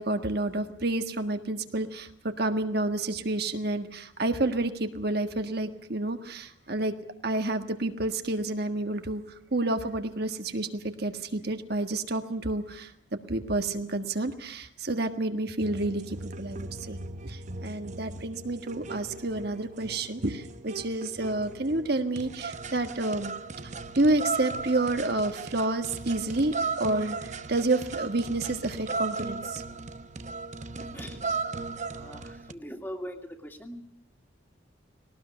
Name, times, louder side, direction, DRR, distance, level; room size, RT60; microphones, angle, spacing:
voice 1, 0.0-2.1 2.4-6.9 7.2-9.2 9.5-12.9 13.3-17.0 17.2-23.3 23.9-29.6, right 2 dB, 55° right, 7 dB, 1.7 m, -29 dB
sound 1, 15.6-32.5, right 3 dB, 40° right, 0.9 m, -37 dB
voice 2, 30.8-31.2 31.9-33.8, equal, 10° left, 4 dB, 2.5 m, -41 dB
20.0 x 19.0 x 9.9 m, 0.74 s
head